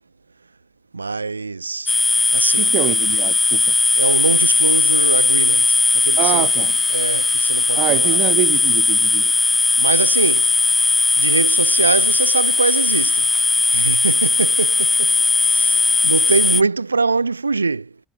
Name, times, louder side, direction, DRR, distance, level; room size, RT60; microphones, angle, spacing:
voice 1, 0.9-1.9 2.3-2.7 4.0-8.5 9.8-10.5 11.2-13.3 13.7-18.0, right 4 dB, 90° right, 4.4 m, -23 dB
sound 1, 1.9-16.6, left 3 dB, 15° left, 2.0 m, -17 dB
voice 2, 2.6-3.7 6.2-6.7 7.7-9.3, right 34 dB, 65° right, 2.1 m, -24 dB
figure-of-eight pair, 65°, 0 cm